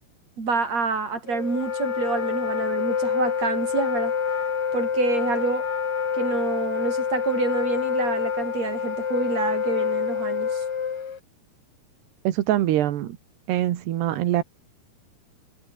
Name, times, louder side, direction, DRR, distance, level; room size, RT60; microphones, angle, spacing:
voice 1, 0.4-4.1 4.7-5.7 6.1-10.6, right 4 dB, 40° right, 6.9 m, -27 dB
Wind instrument woodwind instrument, 1.3-11.2, left 7 dB, 40° left, 2.7 m, -27 dB
voice 2, 12.3-13.2 13.5-14.4, right 13 dB, 90° right, 3.7 m, -23 dB
omnidirectional pair, 4.7 m